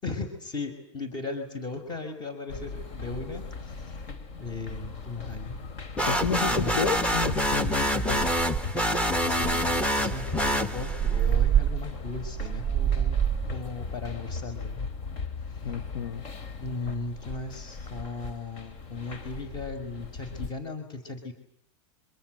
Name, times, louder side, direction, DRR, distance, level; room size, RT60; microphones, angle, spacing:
voice 1, 0.0-4.0 4.4-5.6 6.5-6.8 9.3-13.2 13.5-14.9 15.5-15.6 16.6-21.3, left 3 dB, 30° left, 8 dB, 5.7 m, -37 dB
sound 1, 2.5-20.5, left 4 dB, 45° left, 4.0 m, -38 dB
voice 2, 6.0-8.3 15.6-16.2, left 7 dB, 85° left, 13 dB, 1.5 m, -31 dB
sound 2, 6.0-11.2, equal, 10° left, 1.6 m, -26 dB
sound 3, 7.2-7.4 7.8-7.9 8.1-8.8 9.4-13.6, right 10 dB, 20° right, 1.6 m, -27 dB
26.5 x 26.0 x 7.9 m, 0.68 s
hypercardioid pair, 125°, 16 cm